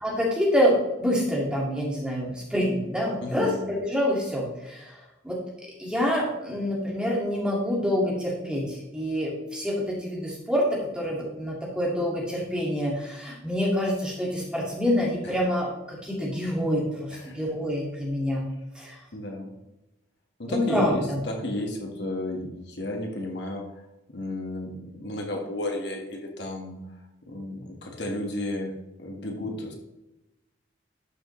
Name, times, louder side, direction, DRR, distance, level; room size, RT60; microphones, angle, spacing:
voice 1, 0.0-4.9 5.2-5.4 5.8-10.6 10.9-18.4 18.8-19.0 20.5-21.2, equal, 5° right, -4 dB, 2.2 m, -27 dB
voice 2, 3.2-3.6 15.2-15.4 17.1-17.4 19.1-19.6 20.4-23.7 24.1-26.9 27.3-28.7 29.0-29.7, left 1 dB, 70° left, 1 dB, 1.7 m, -33 dB
12.0 x 6.4 x 3.2 m, 0.96 s
head